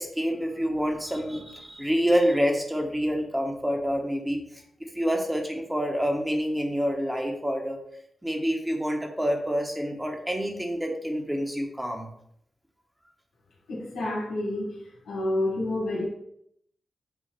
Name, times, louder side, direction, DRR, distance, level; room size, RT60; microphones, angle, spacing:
voice 1, 0.0-4.4 4.9-7.8 8.2-12.1, equal, 15° right, 2 dB, 1.5 m, -27 dB
voice 2, 13.7-14.8 15.1-16.0, left 1 dB, 90° left, -4 dB, 1.9 m, -29 dB
8.3 x 2.8 x 4.5 m, 0.73 s
supercardioid pair, 45°, 0 cm